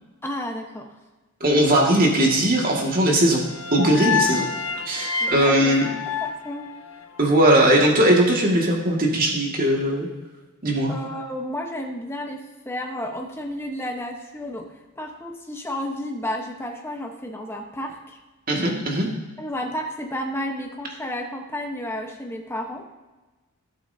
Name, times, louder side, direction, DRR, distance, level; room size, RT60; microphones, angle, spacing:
voice 1, 0.2-0.9 5.2-5.8 6.2-6.7 10.9-14.7 15.0-18.2 19.4-22.8, left 1 dB, 10° left, 2 dB, 1.1 m, -32 dB
voice 2, 1.4-3.4 3.7-4.5 4.8-5.9 7.2-10.1 10.6-10.9 18.5-19.1, right 1 dB, 40° right, -1 dB, 2.1 m, -19 dB
sound 1, 3.2-7.4, left 6 dB, 65° left, 0.7 m, -28 dB
17.0 x 7.7 x 2.8 m, 1.2 s
head